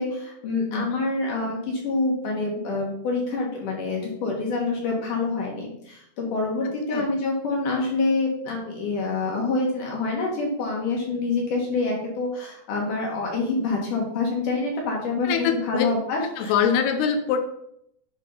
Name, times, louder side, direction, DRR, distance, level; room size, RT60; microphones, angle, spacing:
voice 1, 0.0-16.5, left 3 dB, 65° left, -1 dB, 2.5 m, -26 dB
voice 2, 15.2-15.9 16.4-17.4, left 7 dB, 90° left, 6 dB, 2.7 m, -23 dB
10.0 x 3.7 x 5.4 m, 0.75 s
omnidirectional pair, 4.7 m